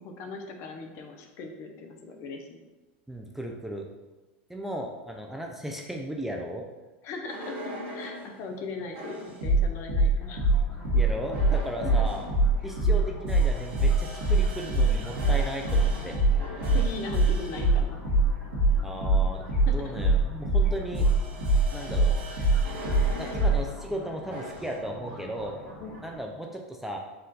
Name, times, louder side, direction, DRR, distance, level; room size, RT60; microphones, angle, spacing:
voice 1, 0.0-2.6 7.0-10.4 11.8-12.1 16.7-18.0 19.7-19.8 25.8-25.9, left 3 dB, 45° left, 4 dB, 0.6 m, -39 dB
voice 2, 3.1-3.9 4.5-6.6 10.9-12.3 12.6-16.2 18.8-19.4 19.7-21.1 21.7-22.2 23.2-25.6 26.0-27.0, right 1 dB, 5° right, 1 dB, 0.4 m, -35 dB
sound 1, 7.3-8.3 8.9-23.6 24.3-24.7, right 2 dB, 70° right, 1.3 m, -24 dB
sound 2, 10.2-26.2, left 1 dB, 20° left, 1.3 m, -46 dB
4.3 x 2.4 x 3.9 m, 1.1 s
supercardioid pair, 130°, 6 cm